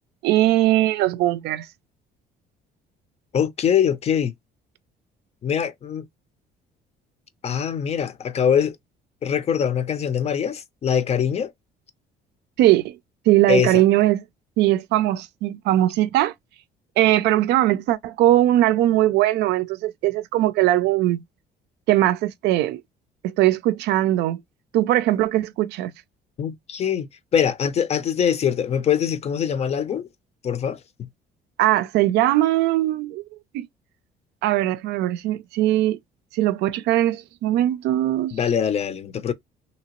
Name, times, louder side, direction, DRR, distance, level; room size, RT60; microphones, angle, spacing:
voice 1, 0.2-1.7 12.6-13.0 13.3-14.3 14.6-16.3 17.0-21.2 21.9-22.8 23.2-24.4 24.7-25.9 31.6-33.2 33.5-33.7 34.4-36.0 36.3-38.4, right 14 dB, 80° right, 0.4 m, -20 dB
voice 2, 3.3-4.3 5.4-6.1 7.4-8.8 9.2-11.5 13.5-13.7 26.4-30.1 30.4-31.1 38.3-39.3, left 8 dB, 40° left, 0.5 m, -23 dB
2.9 x 2.8 x 2.9 m
cardioid pair, 110°, 17 cm